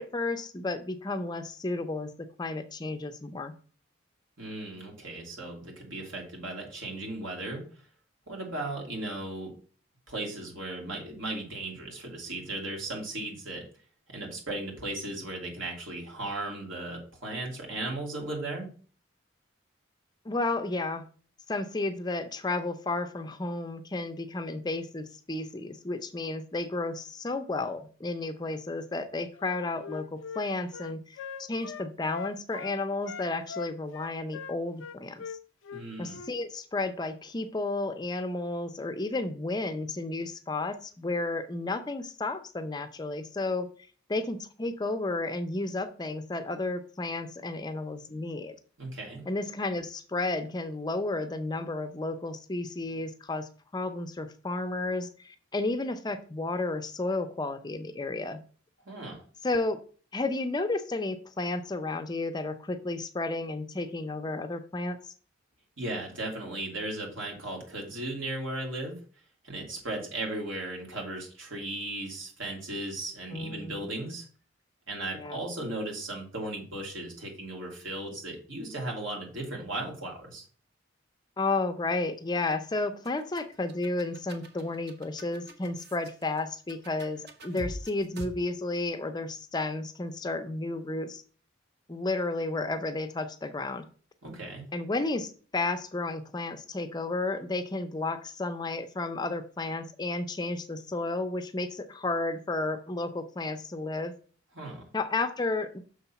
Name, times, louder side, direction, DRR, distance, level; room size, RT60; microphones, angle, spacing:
voice 1, 0.0-2.1 2.4-3.5 20.3-21.0 21.5-35.2 36.0-43.7 44.1-48.6 49.3-58.4 59.4-59.8 60.1-65.1 73.3-73.8 75.1-75.4 81.4-91.2 91.9-93.9 94.7-104.1 104.9-105.8, left 2 dB, 20° left, 8 dB, 0.5 m, -32 dB
voice 2, 4.4-7.6 8.3-9.5 10.1-13.6 14.1-18.7 35.7-36.2 48.8-49.2 58.9-59.2 65.8-69.0 69.4-74.3 74.9-80.4 94.2-94.6 104.5-104.9, right 2 dB, 85° right, 0 dB, 2.7 m, -36 dB
Wind instrument woodwind instrument, 29.4-32.8 33.0-36.3, left 6 dB, 75° left, 0.4 m, -41 dB
sound 1, 82.8-88.3, equal, 55° right, 1.1 m, -44 dB
6.4 x 3.9 x 5.7 m, 0.41 s
head